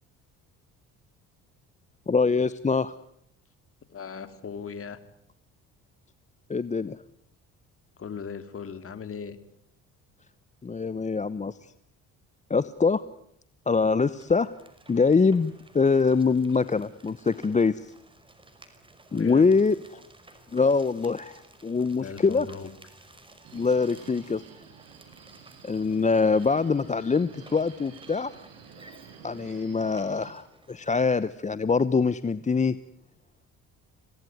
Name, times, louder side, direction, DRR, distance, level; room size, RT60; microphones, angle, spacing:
voice 1, 2.1-2.9 6.5-7.0 10.6-11.6 12.5-13.0 13.7-14.5 14.9-17.9 19.1-19.8 20.5-22.5 23.5-24.4 25.6-28.3 29.2-32.8, left 4 dB, 20° left, 15 dB, 0.9 m, -24 dB
voice 2, 3.9-5.0 8.0-9.4 19.1-19.6 22.0-22.7, left 6 dB, 40° left, 11 dB, 3.0 m, -38 dB
sound 1, 13.9-31.2, right 2 dB, 15° right, 5.3 m, -55 dB
Subway metro underground, 23.4-30.3, right 8 dB, 80° right, 7.5 m, -50 dB
27.0 x 18.0 x 9.4 m, 0.72 s
cardioid pair, 85°, 34 cm